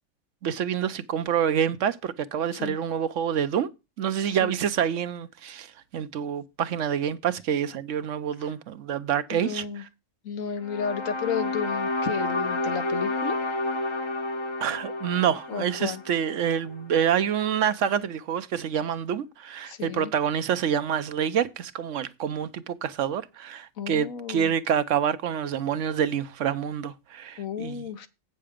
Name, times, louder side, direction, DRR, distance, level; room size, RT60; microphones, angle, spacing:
voice 1, 0.4-3.7 4.0-5.7 5.9-9.6 14.6-27.9, right 8 dB, 70° right, 1.0 m, -27 dB
voice 2, 9.3-9.8 10.2-13.4 15.5-16.0 19.6-20.1 23.8-24.5 27.4-28.1, left 7 dB, 85° left, 1.4 m, -33 dB
sound 1, 10.6-16.8, left 2 dB, 25° left, 0.7 m, -30 dB
8.4 x 6.8 x 5.0 m
omnidirectional pair, 1.4 m